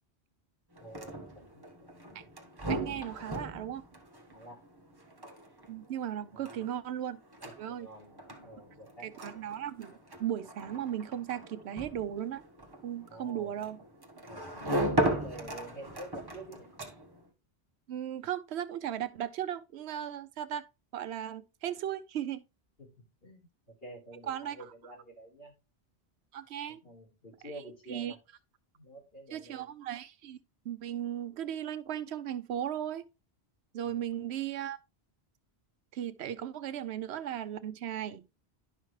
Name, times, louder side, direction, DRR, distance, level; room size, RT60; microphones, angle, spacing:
sound 1, 0.7-17.3, right 1 dB, 20° right, 1.3 m, -38 dB
voice 1, 0.8-1.9 4.3-4.7 6.3-6.6 7.4-9.1 13.1-13.6 14.3-14.7 15.0-16.7 22.8-25.5 26.7-28.2 28.7-29.7 33.9-34.2, right 1 dB, 65° left, 3.9 m, -49 dB
voice 2, 2.7-3.8 5.7-7.2 7.6-7.9 9.0-12.4 12.8-13.8 17.9-20.6 20.9-22.4 24.3-24.9 26.3-26.8 27.4-27.5 27.9-28.1 29.3-30.4 30.7-33.1 33.7-34.8 35.9-38.2, right 10 dB, 85° right, 0.9 m, -36 dB
11.0 x 5.8 x 3.1 m
omnidirectional pair, 1.1 m